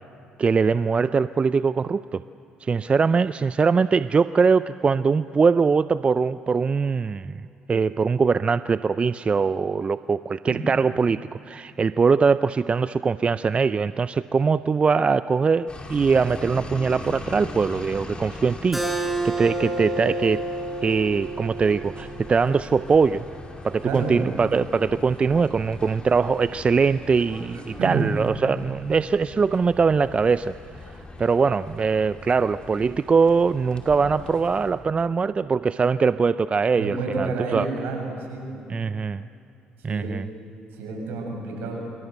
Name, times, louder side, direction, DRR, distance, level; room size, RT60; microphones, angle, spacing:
voice 1, 0.4-2.2 2.6-7.4 7.7-20.4 20.8-23.3 23.6-30.5 31.2-37.7 38.7-39.3 39.8-40.3, right 5 dB, 35° right, 14 dB, 0.5 m, -22 dB
sound 1, 15.7-34.7, left 2 dB, 30° left, 5.0 m, -40 dB
Keyboard (musical), 18.7-23.9, right 2 dB, 5° right, 5.5 m, -31 dB
voice 2, 23.8-24.3 27.5-28.0 36.7-38.6 39.9-40.1 40.7-41.9, right 3 dB, 75° right, 1 dB, 7.3 m, -30 dB
26.5 x 23.5 x 8.1 m, 2.9 s
supercardioid pair, 60°, 3 cm